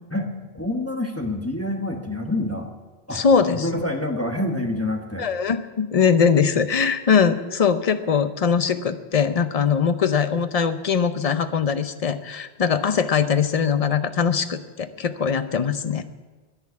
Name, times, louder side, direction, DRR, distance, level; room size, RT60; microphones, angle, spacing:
voice 1, 0.1-2.7 3.1-3.2 3.5-5.3, left 1 dB, 15° left, 2 dB, 1.2 m, -27 dB
voice 2, 3.1-3.7 5.2-16.0, left 6 dB, 40° left, 10 dB, 0.7 m, -21 dB
10.5 x 10.5 x 8.3 m, 1.3 s
omnidirectional pair, 1.1 m